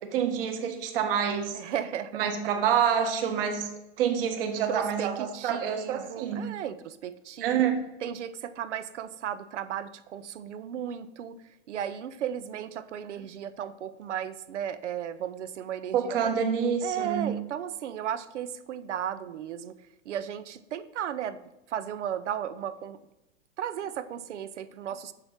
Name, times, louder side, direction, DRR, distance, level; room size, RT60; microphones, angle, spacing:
voice 1, 0.0-1.6 2.1-3.7 4.0-6.5 7.4-7.8 15.9-17.4, right 8 dB, 55° right, 5 dB, 1.5 m, -27 dB
voice 2, 1.5-2.2 4.5-7.7 8.0-11.4 11.7-16.3 16.8-19.8 20.0-21.4 21.7-23.0 23.6-25.1, right 9 dB, 90° right, 14 dB, 0.8 m, -35 dB
7.8 x 6.6 x 5.7 m, 0.93 s
hypercardioid pair, 150°, 34 cm